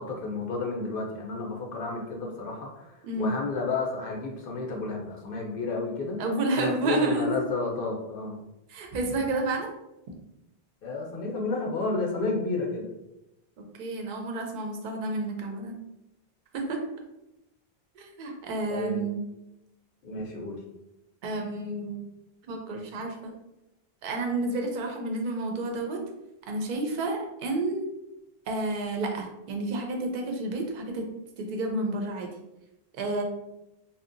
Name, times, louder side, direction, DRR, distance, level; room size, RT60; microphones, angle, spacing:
voice 1, 0.0-6.2 6.6-8.4 10.8-12.9 18.7-19.0 20.0-20.6, left 3 dB, 65° left, 0 dB, 0.7 m, -31 dB
voice 2, 6.2-7.4 8.7-9.7 13.6-15.7 16.5-16.8 18.0-19.2 21.2-22.0 22.5-23.3 24.0-26.0 26.5-27.8 28.5-31.0 31.4-32.3 32.9-33.2, right 2 dB, 60° right, 2 dB, 0.6 m, -30 dB
2.7 x 2.1 x 2.5 m, 0.91 s
omnidirectional pair, 1.1 m